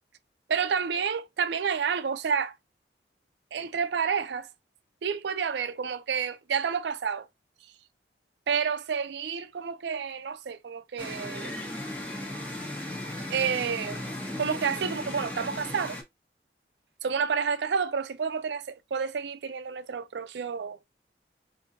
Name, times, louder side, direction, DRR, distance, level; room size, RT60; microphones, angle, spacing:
voice 1, 0.5-2.5 3.5-4.5 5.0-7.3 8.5-11.5 13.3-14.0 14.3-16.0 17.0-20.8, right 6 dB, 75° right, 0.4 m, -29 dB
sound 1, 11.0-16.0, left 1 dB, 10° left, 0.8 m, -36 dB
3.7 x 2.7 x 2.6 m
head